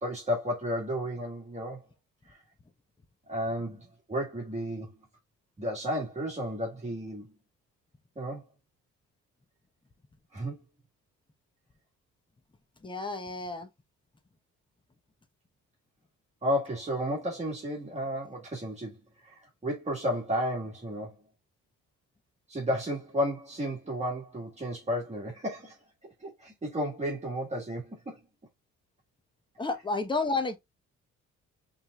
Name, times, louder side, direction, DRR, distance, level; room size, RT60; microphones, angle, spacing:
voice 1, 0.0-1.9 2.3-2.4 3.3-4.9 5.6-7.3 8.1-8.4 10.3-10.6 16.4-19.0 19.2-21.2 22.5-25.8 26.2-28.2, equal, 20° right, 1.7 m, -33 dB
voice 2, 12.8-13.7 29.6-30.6, left 3 dB, 15° left, 1.0 m, -31 dB
5.8 x 3.5 x 2.4 m
cardioid pair, 90°, 30 cm